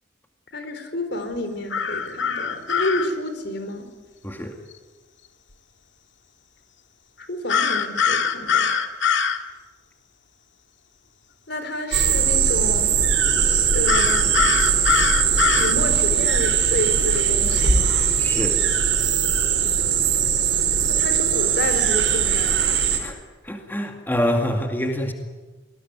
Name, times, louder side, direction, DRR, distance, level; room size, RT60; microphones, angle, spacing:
voice 1, 0.5-3.9 7.2-8.7 11.5-12.9 13.5-14.5 15.5-17.9 20.9-22.7, left 1 dB, 65° left, 8 dB, 4.4 m, -29 dB
sound 1, 1.7-3.1 7.5-9.4 13.9-15.8, left 6 dB, 90° left, 2.0 m, -22 dB
voice 2, 4.2-4.6 18.2-18.6 23.0-23.2 23.4-25.1, equal, 10° left, 3 dB, 2.3 m, -25 dB
sound 2, 11.9-23.0, right 7 dB, 85° right, 4.9 m, -20 dB
26.0 x 20.0 x 9.6 m, 1.2 s
head